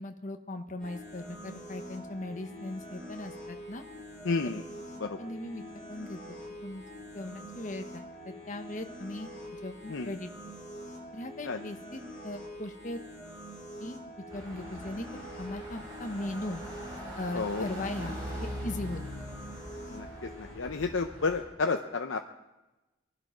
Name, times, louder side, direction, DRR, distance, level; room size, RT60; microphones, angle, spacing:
voice 1, 0.0-3.8 5.2-6.8 7.1-10.3 11.1-13.0 13.8-14.0 14.3-16.6 17.2-18.2 18.6-19.0, left 1 dB, 40° left, 6 dB, 1.1 m, -39 dB
sound 1, 0.8-20.5, equal, 5° left, 6.3 m, -45 dB
voice 2, 4.2-4.6 5.0-5.2 9.9-10.1 11.5-11.6 17.3-17.6 19.9-20.3 20.6-22.2, left 4 dB, 80° left, 4 dB, 0.7 m, -31 dB
sound 2, 14.3-21.4, equal, 20° right, 6.2 m, -42 dB
22.0 x 11.5 x 5.0 m, 1.1 s
head